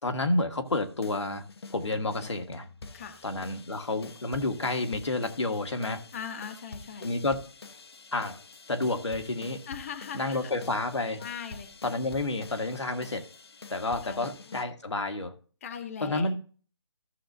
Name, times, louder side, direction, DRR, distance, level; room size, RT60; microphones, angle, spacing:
voice 1, 0.0-1.4 1.7-2.7 3.2-6.0 7.0-7.4 8.1-8.4 8.7-9.6 10.1-11.2 11.8-13.2 13.7-15.3 16.0-16.3, left 2 dB, 80° left, 1.7 m, -30 dB
sound 1, 0.7-14.6, left 3 dB, 65° left, 1.0 m, -47 dB
voice 2, 6.1-7.1 9.6-10.5 11.2-11.7 14.0-14.3 15.6-16.3, left 7 dB, 30° left, 1.0 m, -39 dB
15.0 x 7.2 x 2.7 m
figure-of-eight pair, 160°, 15 cm